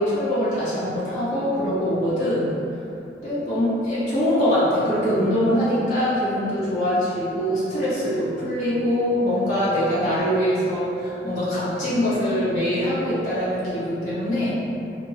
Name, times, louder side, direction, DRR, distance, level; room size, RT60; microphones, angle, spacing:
voice 1, 0.0-2.5 3.2-14.5, equal, 45° left, -11 dB, 1.2 m, -23 dB
4.2 x 2.2 x 3.0 m, 2.7 s
head